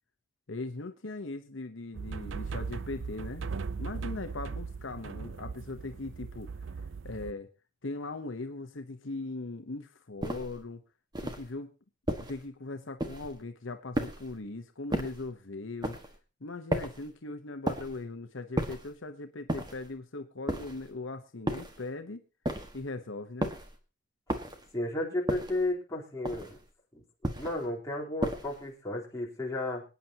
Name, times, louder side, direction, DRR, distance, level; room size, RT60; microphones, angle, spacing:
voice 1, 0.5-3.4 3.8-6.5 7.0-7.5 7.8-10.8 11.2-11.7 12.2-16.0 16.4-22.2 22.7-23.5, left 2 dB, 70° left, 7 dB, 1.0 m, -39 dB
sound 1, 1.9-7.3, right 5 dB, 70° right, 0.5 m, -38 dB
sound 2, 10.2-10.6 11.1-11.5 12.1-12.4 13.0-13.4 13.9-14.4 14.9-15.3 15.8-16.2 16.7-17.1 17.7-18.0 18.6-18.9 19.5-19.9 20.5-20.9 21.5-21.8 22.4-22.9 23.4-23.8 24.3-24.7 25.3-25.7 26.2-26.6 27.2-27.6 28.2-28.6, right 1 dB, 20° right, 1.6 m, -34 dB
voice 2, 24.7-26.6 26.9-27.0 27.3-29.8, left 2 dB, 15° left, -3 dB, 3.8 m, -33 dB
25.5 x 9.4 x 2.9 m, 0.32 s
head